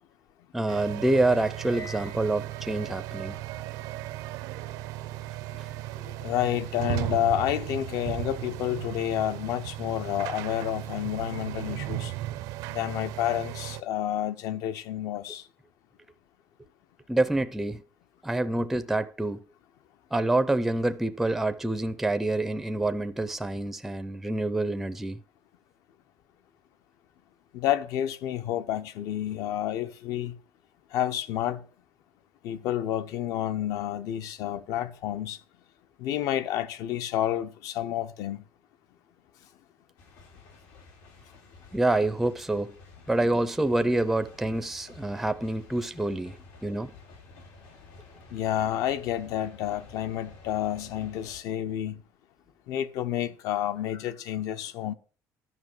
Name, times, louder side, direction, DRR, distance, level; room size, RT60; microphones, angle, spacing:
voice 1, 0.5-3.4 17.1-17.8 18.2-19.4 20.1-25.2 41.7-42.8 43.1-46.4 46.6-46.9, right 2 dB, 5° right, 0.4 m, -27 dB
sound 1, 0.7-13.8, right 16 dB, 90° right, 0.6 m, -36 dB
voice 2, 1.7-2.1 5.5-5.6 6.0-12.1 12.7-15.5 27.5-30.4 30.9-31.6 32.4-35.4 36.0-38.4 48.3-52.0 52.7-54.9, left 11 dB, 70° left, 0.8 m, -30 dB
sound 2, 40.0-51.4, left 4 dB, 90° left, 3.2 m, -51 dB
11.0 x 6.1 x 6.5 m
cardioid pair, 165°, 6 cm